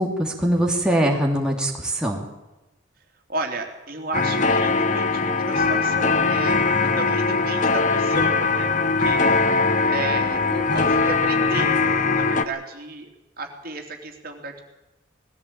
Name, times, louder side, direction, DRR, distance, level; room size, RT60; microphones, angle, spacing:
voice 1, 0.0-2.2, right 1 dB, 5° right, -1 dB, 2.9 m, -22 dB
voice 2, 3.3-8.7 9.0-9.4 9.9-13.1 13.4-14.6, right 3 dB, 50° right, 3 dB, 3.2 m, -33 dB
sound 1, 4.1-12.4, left 4 dB, 40° left, 1.1 m, -21 dB
20.0 x 15.5 x 8.7 m, 1.0 s
head